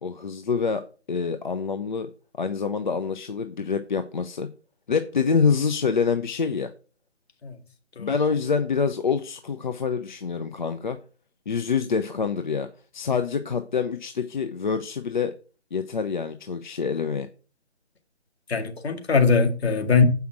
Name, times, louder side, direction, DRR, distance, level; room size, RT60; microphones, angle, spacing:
voice 1, 0.0-2.1 2.4-4.5 4.9-6.7 8.0-11.0 11.5-12.7 12.9-15.3 15.7-17.3, left 5 dB, 45° left, 0.6 m, -26 dB
voice 2, 18.5-20.0, left 5 dB, 60° left, 2.0 m, -21 dB
7.6 x 5.7 x 5.9 m
figure-of-eight pair, 150°, 35 cm